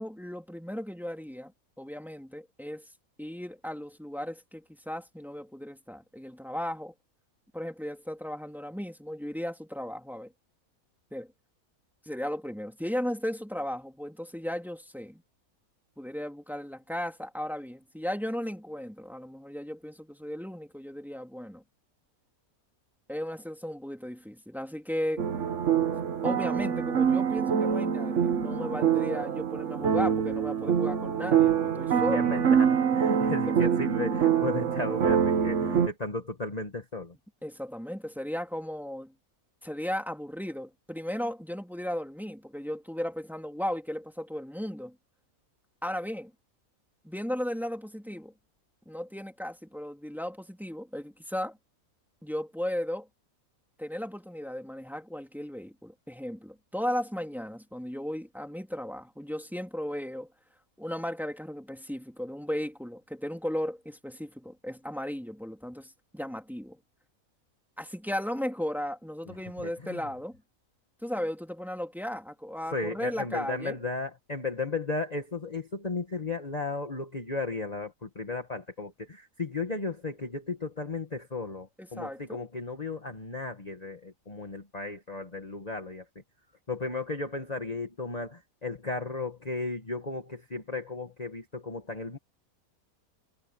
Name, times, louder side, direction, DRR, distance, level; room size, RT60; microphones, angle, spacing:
voice 1, 0.0-1.5 1.8-2.9 3.2-6.9 7.5-10.3 11.1-11.3 12.0-15.2 16.0-21.6 23.1-25.3 26.2-32.3 33.6-33.7 37.4-39.1 39.6-44.9 45.8-46.3 47.0-48.3 48.9-51.6 52.2-53.1 53.8-60.3 60.8-66.8 67.8-70.4 71.0-73.8 81.8-82.4, equal, ahead, 2.9 m, -35 dB
sound 1, 25.2-35.9, right 7 dB, 60° right, 1.4 m, -25 dB
voice 2, 32.1-37.1 69.6-70.0 72.7-86.0 86.7-92.2, left 3 dB, 30° left, 1.7 m, -35 dB
omnidirectional pair, 1.5 m